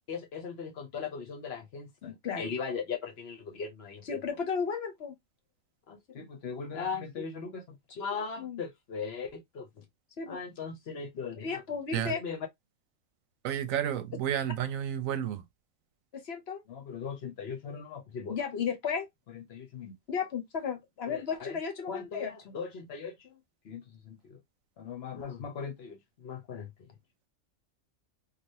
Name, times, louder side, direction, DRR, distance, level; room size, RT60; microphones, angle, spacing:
voice 1, 0.1-5.2 5.9-9.8 10.2-12.5 16.1-23.4 23.6-24.4 24.8-26.9, left 6 dB, 55° left, 0.9 m, -36 dB
voice 2, 13.4-15.4, right 10 dB, 85° right, 1.0 m, -31 dB
3.2 x 2.4 x 2.6 m
omnidirectional pair, 1.4 m